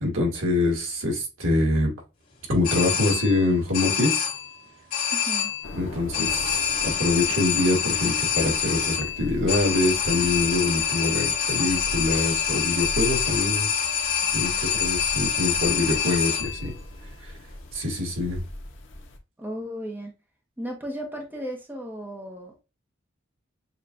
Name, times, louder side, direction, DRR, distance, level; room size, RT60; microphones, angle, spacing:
voice 1, 0.0-1.9 2.5-4.2 5.7-13.7 14.3-16.7 17.2-17.3 17.7-18.4, left 2 dB, 80° right, 1.8 m, -25 dB
sound 1, 2.6-3.5 3.7-4.6 4.9-5.7 6.1-16.7, left 8 dB, 40° left, 1.9 m, -26 dB
voice 2, 5.1-5.5 19.4-20.1 20.6-22.6, equal, 10° right, 0.8 m, -35 dB
sound 2, 5.6-19.2, left 1 dB, 65° left, 0.9 m, -39 dB
6.7 x 2.4 x 2.5 m
head